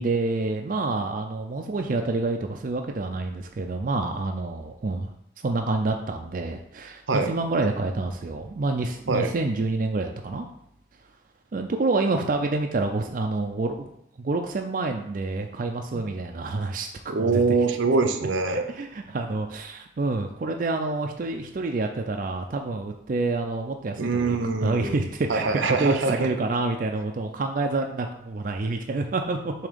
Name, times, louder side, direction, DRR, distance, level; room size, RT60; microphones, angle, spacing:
voice 1, 0.0-5.1 5.4-10.4 11.5-13.9 14.2-17.4 18.5-29.5, right 3 dB, 45° right, 3 dB, 0.4 m, -28 dB
voice 2, 17.1-18.6 24.0-24.9 25.3-26.3, right 3 dB, 80° right, 6 dB, 0.7 m, -24 dB
7.1 x 2.8 x 5.1 m, 0.77 s
head